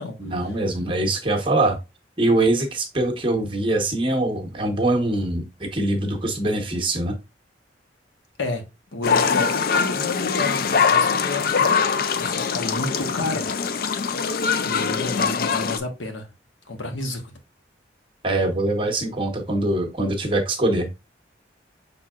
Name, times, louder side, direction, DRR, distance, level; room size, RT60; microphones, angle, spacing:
voice 1, 0.2-1.8 2.2-7.2 18.2-20.9, right 2 dB, 25° right, 1.0 m, -23 dB
voice 2, 8.9-11.8 12.2-14.1 14.6-16.3 16.7-17.3, left 2 dB, 85° left, 1.2 m, -31 dB
sound 1, 9.0-15.8, left 6 dB, 50° left, 0.4 m, -22 dB
5.9 x 3.7 x 2.4 m
head